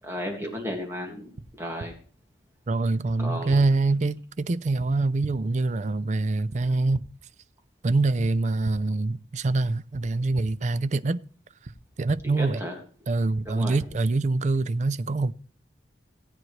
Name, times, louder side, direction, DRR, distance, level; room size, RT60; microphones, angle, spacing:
voice 1, 0.0-1.9 3.2-3.6 12.2-12.8 13.5-13.8, equal, 15° right, 1.9 m, -34 dB
sound 1, 1.3-1.4 1.8-1.9 3.1-3.2 3.5-3.6 4.8-4.9 5.2-5.3 6.5-6.6 6.9-7.0 8.2-8.3 8.6-8.7 9.9-10.0 10.4-10.5 11.6-11.7 12.1-12.2 13.3-13.4 13.8-13.9, right 3 dB, 85° right, 0.9 m, -38 dB
voice 2, 2.7-7.0 7.8-11.2 12.0-12.6 13.1-15.3, right 3 dB, 40° right, 0.4 m, -25 dB
17.5 x 9.0 x 3.2 m
head